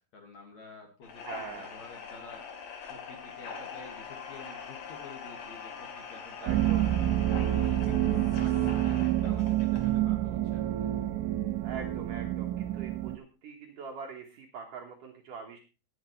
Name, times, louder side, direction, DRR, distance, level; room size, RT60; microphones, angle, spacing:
voice 1, 0.1-2.4 2.9-10.9, left 3 dB, 50° left, 2 dB, 2.4 m, -50 dB
sound 1, 1.0-10.0, left 6 dB, 70° left, 4.4 m, -43 dB
voice 2, 1.2-1.8 6.4-6.9 11.6-15.6, right 5 dB, 65° right, 1 dB, 2.2 m, -43 dB
sound 2, 6.5-13.2, right 13 dB, 85° right, 3.0 m, -28 dB
18.0 x 8.0 x 3.1 m, 0.31 s
omnidirectional pair, 5.2 m